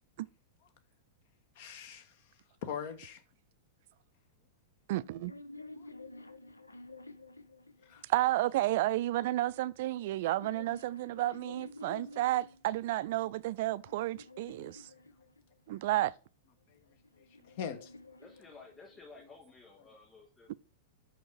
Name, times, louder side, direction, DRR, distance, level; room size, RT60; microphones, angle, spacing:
voice 1, 1.5-2.2 2.6-3.2 5.8-5.9 7.8-8.0 16.7-16.8 17.4-17.9, left 7 dB, 50° left, 1.3 m, -41 dB
sound 1, 4.9-8.3 9.2-12.6 13.3-15.7 16.7-19.2, left 2 dB, 80° left, 0.7 m, -51 dB
voice 2, 4.9-5.3 8.1-14.8 15.7-16.1, right 15 dB, 50° right, 0.4 m, -31 dB
voice 3, 18.2-20.5, left 4 dB, 15° left, 3.1 m, -54 dB
6.2 x 5.8 x 7.0 m
figure-of-eight pair, 100°, 0 cm